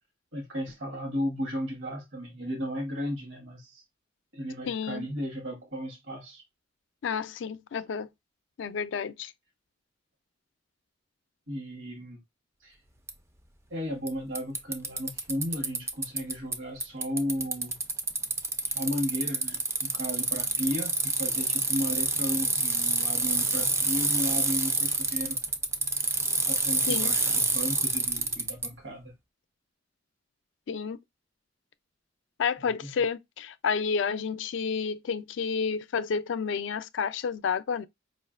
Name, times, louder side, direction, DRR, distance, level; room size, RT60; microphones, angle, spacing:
voice 1, 0.3-3.8 4.3-6.4 11.5-12.2 12.6-12.8 13.7-17.8 18.7-25.4 26.5-29.1 32.6-33.0, equal, 70° right, 1.1 m, -34 dB
voice 2, 4.7-5.1 7.0-8.1 8.6-9.3 26.9-27.2 30.7-31.0 32.4-37.9, left 6 dB, 70° left, 0.4 m, -30 dB
Bicycle, 13.1-13.2 14.1-14.2 14.3-16.5 16.8-28.7, right 3 dB, 15° right, 0.3 m, -27 dB
4.8 x 2.5 x 2.4 m
head